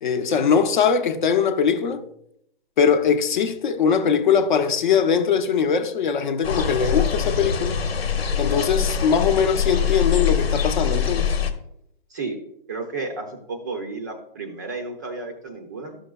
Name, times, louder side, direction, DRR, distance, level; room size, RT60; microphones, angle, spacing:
voice 1, 0.0-2.0 2.8-7.8 8.4-11.4, left 6 dB, 50° left, 0.7 m, -21 dB
sound 1, 6.4-11.5, left 7 dB, 80° left, 1.1 m, -23 dB
voice 2, 12.7-16.0, right 3 dB, 20° right, 0.4 m, -32 dB
12.5 x 6.1 x 2.3 m
hypercardioid pair, 160°, 30 cm